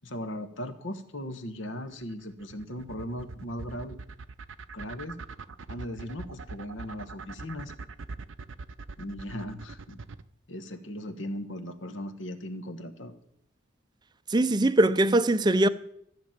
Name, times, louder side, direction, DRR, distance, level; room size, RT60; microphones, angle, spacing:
voice 1, 0.0-4.0 4.7-5.2 5.7-7.7 9.0-10.0 10.5-13.1, equal, 65° left, 1.3 m, -38 dB
sound 1, 2.0-10.2, right 4 dB, 75° right, 0.6 m, -42 dB
voice 2, 14.3-15.7, right 1 dB, 20° right, 0.5 m, -21 dB
14.5 x 6.1 x 8.9 m
head